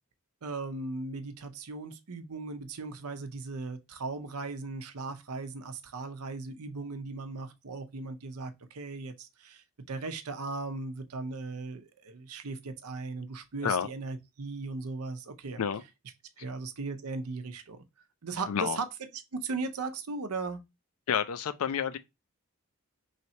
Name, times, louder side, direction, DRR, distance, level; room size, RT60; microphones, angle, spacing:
voice 1, 0.4-15.6 16.4-17.8 18.2-18.9 19.3-20.6, right 3 dB, 85° right, 0.7 m, -37 dB
voice 2, 18.5-18.8 21.1-22.0, left 7 dB, 75° left, 0.4 m, -29 dB
3.3 x 2.8 x 4.2 m
head